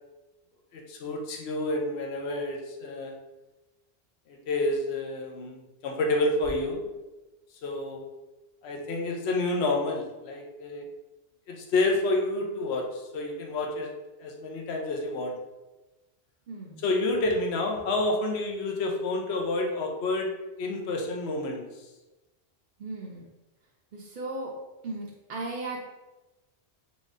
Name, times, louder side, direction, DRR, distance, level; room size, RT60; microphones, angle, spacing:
voice 1, 0.7-3.2 4.3-6.8 7.6-8.1 8.6-10.9 11.5-13.9 14.2-15.4 16.8-20.3 20.6-21.6, left 2 dB, 70° left, 1 dB, 0.9 m, -29 dB
voice 2, 16.5-16.8 22.8-23.3 23.9-24.5 24.8-25.9, right 2 dB, 55° right, -3 dB, 0.6 m, -36 dB
3.9 x 3.6 x 2.5 m, 1.1 s
omnidirectional pair, 1.1 m